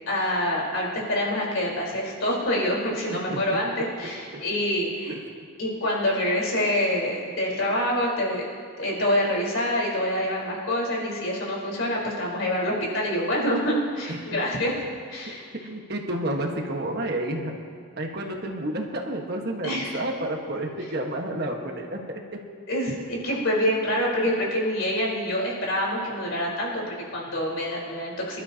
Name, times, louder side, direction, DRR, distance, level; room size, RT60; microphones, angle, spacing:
voice 1, 0.1-5.2 5.6-8.5 8.8-14.7 15.1-15.5 19.6-20.0 22.7-28.4, left 1 dB, 65° left, -4 dB, 4.2 m, -26 dB
voice 2, 14.1-14.4 15.6-17.5 18.0-22.0, right 1 dB, 50° right, 1 dB, 1.5 m, -30 dB
25.0 x 12.0 x 2.9 m, 2.1 s
head